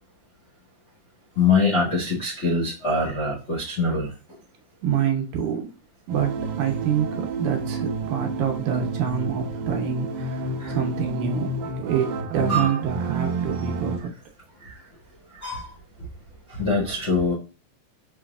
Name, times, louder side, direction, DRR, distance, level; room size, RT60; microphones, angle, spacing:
voice 1, 1.4-4.1 10.6-10.8 12.5-12.8 14.6-14.7 15.4-15.7 16.5-17.3, left 3 dB, 70° left, -3 dB, 0.6 m, -23 dB
voice 2, 4.8-5.7 6.1-14.1, right 8 dB, 70° right, 2 dB, 2.2 m, -26 dB
sound 1, 6.1-14.0, right 3 dB, 90° right, 2.6 m, -30 dB
5.8 x 3.1 x 2.3 m, 0.33 s
omnidirectional pair, 3.9 m